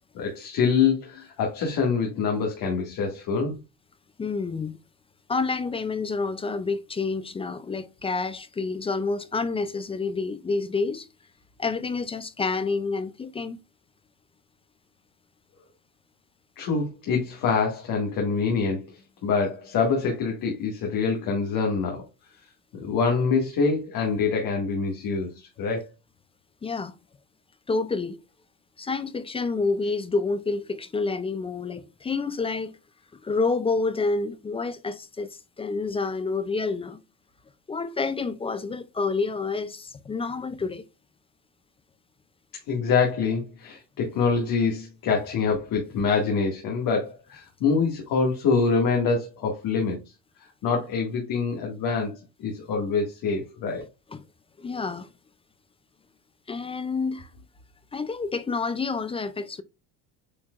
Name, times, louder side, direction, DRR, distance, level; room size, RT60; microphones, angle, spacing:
voice 1, 0.1-3.6 16.6-22.1 22.7-25.8 42.7-50.0 50.6-53.9, left 5 dB, 55° left, 2.0 m, -25 dB
voice 2, 4.2-4.8 5.3-11.1 11.6-13.6 26.6-26.9 27.7-28.2 28.8-32.8 33.2-35.3 35.6-37.0 37.7-40.8 54.1-54.2 54.6-55.1 56.5-57.3 57.9-59.6, left 4 dB, 15° left, 0.4 m, -28 dB
8.5 x 4.6 x 2.4 m
cardioid pair, 140°, 41 cm